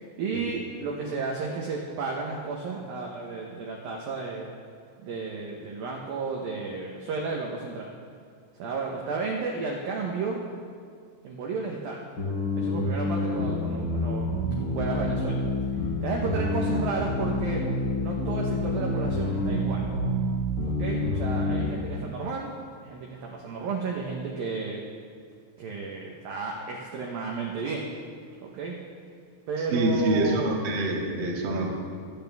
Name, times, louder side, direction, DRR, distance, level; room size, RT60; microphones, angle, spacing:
voice 1, 0.2-4.5 5.0-7.9 8.5-10.4 11.2-12.0 12.6-14.3 14.7-15.4 16.0-17.6 18.0-19.8 20.6-22.6 22.8-24.8 25.6-27.9 28.4-28.8 29.5-30.6, right 4 dB, 90° right, -1 dB, 2.0 m, -32 dB
sound 1, 12.2-21.7, left 1 dB, 30° left, 3.6 m, -28 dB
voice 2, 29.7-31.7, right 1 dB, 70° right, -3 dB, 1.1 m, -25 dB
27.0 x 9.0 x 3.5 m, 2.2 s
omnidirectional pair, 5.8 m